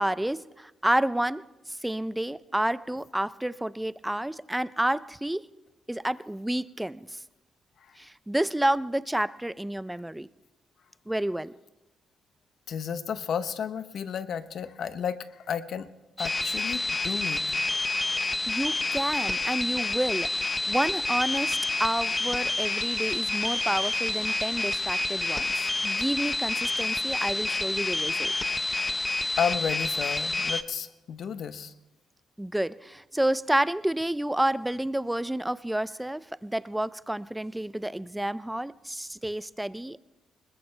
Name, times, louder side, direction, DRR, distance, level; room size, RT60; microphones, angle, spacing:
voice 1, 0.0-5.5 5.9-7.2 8.0-10.3 11.1-11.5 18.5-28.3 32.4-40.0, right 1 dB, 5° right, 17 dB, 0.5 m, -30 dB
voice 2, 12.7-15.9 16.2-17.5 29.3-31.7, left 7 dB, 60° left, 12 dB, 0.9 m, -32 dB
sound 1, 16.2-30.6, left 2 dB, 20° left, 0.8 m, -28 dB
21.0 x 21.0 x 3.3 m, 1.0 s
cardioid pair, 90°, 0 cm